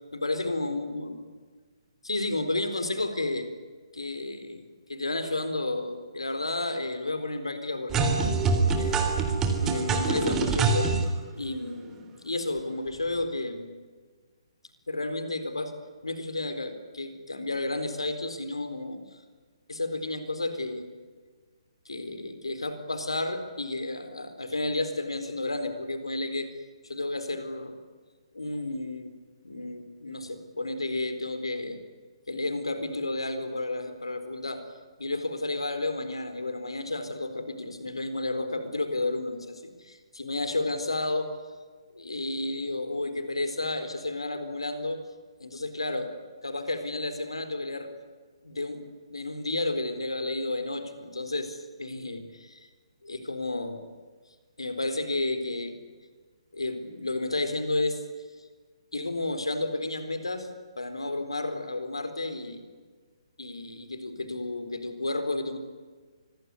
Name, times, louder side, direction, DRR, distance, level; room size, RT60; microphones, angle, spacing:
voice 1, 0.1-1.2 2.0-3.5 3.9-8.1 8.7-10.9 11.3-13.7 14.9-15.7 16.0-19.2 19.7-20.9 21.9-26.5 26.8-27.8 28.3-29.1 29.4-31.8 32.3-34.6 35.0-41.3 41.9-45.0 45.4-46.1 46.4-47.9 48.4-52.7 53.0-53.8 54.6-55.8 56.5-58.0 58.9-60.5 60.8-62.7 63.4-65.6, left 2 dB, 70° left, 9 dB, 4.1 m, -32 dB
sound 1, 7.9-11.0, right 4 dB, 15° right, 3.5 m, -25 dB
26.5 x 22.0 x 9.6 m, 1.5 s
figure-of-eight pair, 135°, 3 cm